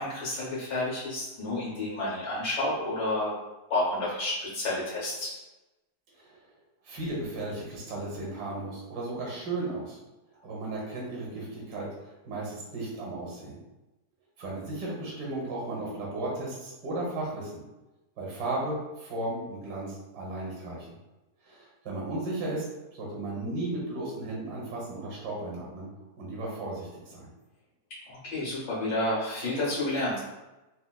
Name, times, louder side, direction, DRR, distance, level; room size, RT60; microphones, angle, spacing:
voice 1, 0.0-3.3 3.7-5.3 28.1-30.2, left 1 dB, 80° left, -8 dB, 1.6 m, -30 dB
voice 2, 6.1-6.4 6.8-10.0 10.4-13.6 14.4-17.6 18.2-20.9 21.4-22.7 22.9-27.3, right 2 dB, 75° right, -4 dB, 1.5 m, -35 dB
4.3 x 2.2 x 2.2 m, 1.0 s
omnidirectional pair, 1.7 m